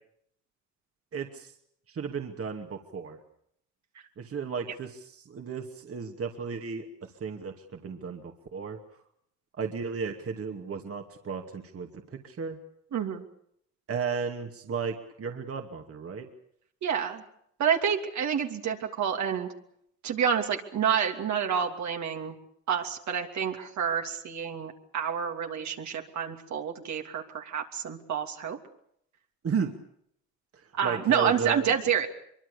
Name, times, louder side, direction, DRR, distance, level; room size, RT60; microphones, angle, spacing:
voice 1, 1.1-1.5 1.9-3.2 4.2-8.8 9.6-12.6 13.9-16.3 29.4-29.7 30.5-31.7, right 5 dB, 50° right, 4 dB, 2.6 m, -34 dB
voice 2, 12.9-13.2 16.8-17.2 17.6-19.5 20.0-22.3 22.7-28.6 30.7-32.1, right 7 dB, 65° right, 3 dB, 3.0 m, -28 dB
24.0 x 23.5 x 7.0 m, 0.70 s
cardioid pair, 90°, 30 cm